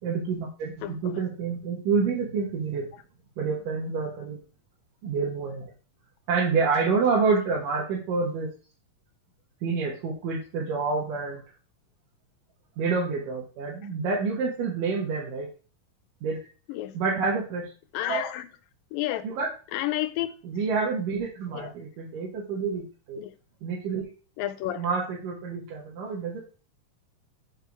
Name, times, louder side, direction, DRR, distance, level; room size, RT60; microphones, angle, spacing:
voice 1, 0.0-2.9 3.4-4.4 5.0-5.7 6.3-8.5 9.6-11.4 12.8-15.5 16.2-16.4 16.9-17.7 18.1-18.3 19.2-19.5 20.4-23.2 23.6-24.0 24.8-26.4, right 4 dB, 75° right, 2.8 m, -28 dB
voice 2, 17.9-18.5 18.9-19.2 19.7-20.3 21.5-21.7 23.2-23.3 24.4-24.8, left 14 dB, 90° left, 2.3 m, -30 dB
6.4 x 4.6 x 4.6 m
omnidirectional pair, 4.0 m